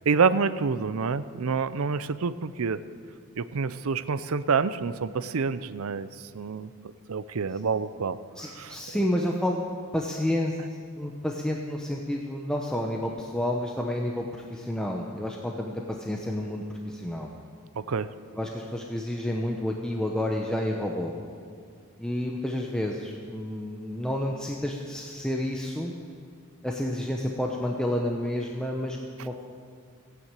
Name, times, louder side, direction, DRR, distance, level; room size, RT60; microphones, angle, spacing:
voice 1, 0.1-2.8 3.4-6.1 6.3-6.7 7.1-8.2 8.6-8.7 17.8-18.1, right 5 dB, 75° right, 14 dB, 0.6 m, -27 dB
voice 2, 8.4-9.7 9.9-10.6 11.0-17.3 18.4-21.1 22.0-25.9 26.6-29.5, left 1 dB, 5° left, 0 dB, 0.8 m, -30 dB
16.0 x 9.3 x 8.3 m, 2.2 s
head